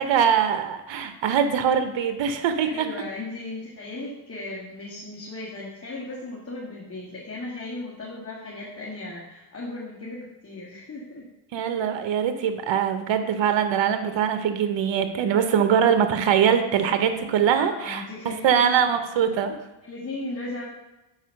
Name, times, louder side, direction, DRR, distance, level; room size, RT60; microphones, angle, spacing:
voice 1, 0.0-2.9 11.5-19.6, right 8 dB, 65° right, 8 dB, 0.9 m, -22 dB
voice 2, 2.6-11.2 17.5-18.7 19.8-20.6, left 2 dB, 30° left, -6 dB, 1.9 m, -36 dB
7.1 x 4.5 x 5.6 m, 1.0 s
cardioid pair, 90°, 47 cm